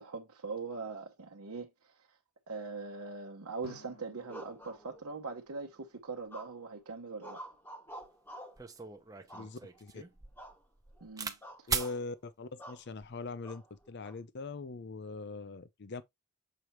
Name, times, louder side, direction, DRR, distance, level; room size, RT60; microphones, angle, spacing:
voice 1, 0.0-2.1 2.5-7.4 11.0-11.7, right 4 dB, 80° right, 0.9 m, -42 dB
Drum, 3.6-6.5, left 3 dB, 70° left, 3.0 m, -58 dB
sound 1, 4.3-5.3 6.3-6.8 7.2-8.7 9.3-9.9 10.4-10.6 10.9-11.1 11.4-12.0 12.6-12.9 13.4-14.2, right 1 dB, 10° left, 1.0 m, -48 dB
sound 2, 8.0-8.1 8.6-11.4 11.7-11.9 12.8-13.2, right 5 dB, 15° right, 0.7 m, -38 dB
voice 2, 9.3-10.0 11.7-16.0, left 3 dB, 50° left, 0.6 m, -42 dB
6.8 x 4.5 x 3.0 m
head